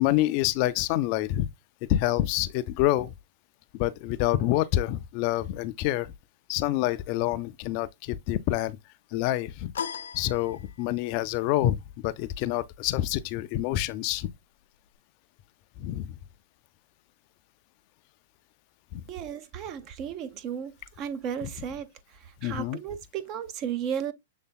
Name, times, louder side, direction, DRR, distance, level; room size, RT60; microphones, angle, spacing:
voice 1, 0.0-1.5 1.9-3.1 3.7-6.1 6.5-8.8 9.1-9.7 10.1-14.3 15.8-16.2 18.9-19.0 21.4-21.5 22.4-22.8, left 14 dB, 45° left, 0.4 m, -27 dB
sound 1, 9.7-11.1, left 7 dB, 75° left, 0.7 m, -37 dB
voice 2, 19.1-24.1, right 8 dB, 35° right, 0.6 m, -34 dB
6.7 x 3.3 x 2.2 m
hypercardioid pair, 130°, 0 cm